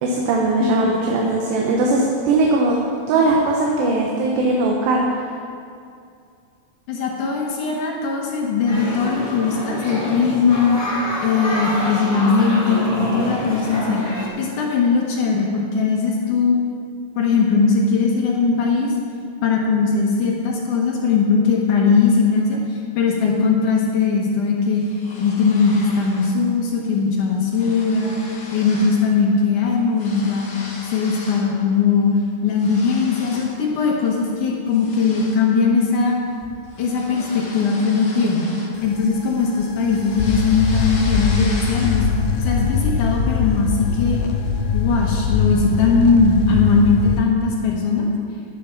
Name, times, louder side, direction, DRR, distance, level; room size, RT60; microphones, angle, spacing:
voice 1, 0.0-2.8 3.1-5.0, right 2 dB, 80° right, -2 dB, 3.3 m, -19 dB
voice 2, 0.6-0.9 6.9-10.8 11.2-16.6 17.2-18.9 19.4-24.8 25.2-28.2 28.5-30.5 30.9-32.1 32.4-36.2 36.8-38.5 38.8-42.0 42.4-44.2 44.7-48.1, left 4 dB, 65° left, -1 dB, 2.3 m, -19 dB
sound 1, 8.7-14.3, left 1 dB, 10° left, 1.2 m, -27 dB
sound 2, 24.7-26.4 26.7-27.0 27.2-29.1 29.4-31.5 32.0-33.6 34.0-34.3 34.7-39.2 39.6-42.3, left 2 dB, 40° left, 1.7 m, -38 dB
sound 3, 38.8-47.2, left 5 dB, 80° left, 2.8 m, -22 dB
11.0 x 10.0 x 5.9 m, 2.4 s
omnidirectional pair, 4.9 m